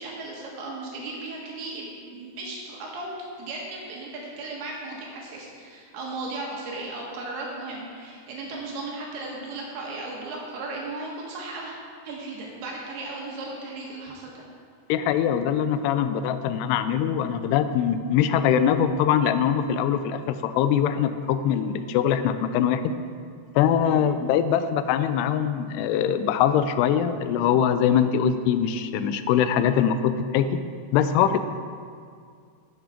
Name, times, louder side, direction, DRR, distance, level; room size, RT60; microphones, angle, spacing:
voice 1, 0.0-11.8 12.0-14.4 23.8-24.1, right 2 dB, 75° right, -2 dB, 3.1 m, -36 dB
voice 2, 14.9-22.8 23.6-30.5 30.9-31.4, left 9 dB, 85° left, 11 dB, 2.6 m, -22 dB
8.6 x 8.0 x 5.0 m, 2.1 s
omnidirectional pair, 4.8 m